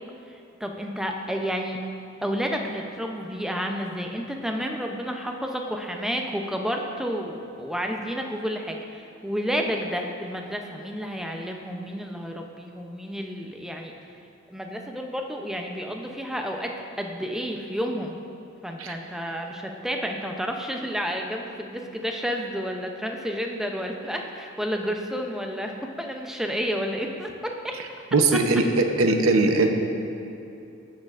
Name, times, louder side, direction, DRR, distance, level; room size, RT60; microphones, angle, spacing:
voice 1, 0.3-1.8 2.2-13.9 14.5-18.2 18.6-27.8, equal, ahead, 2 dB, 0.4 m, -31 dB
voice 2, 28.1-29.7, right 3 dB, 90° right, 4 dB, 0.6 m, -20 dB
13.0 x 6.3 x 2.4 m, 2.7 s
head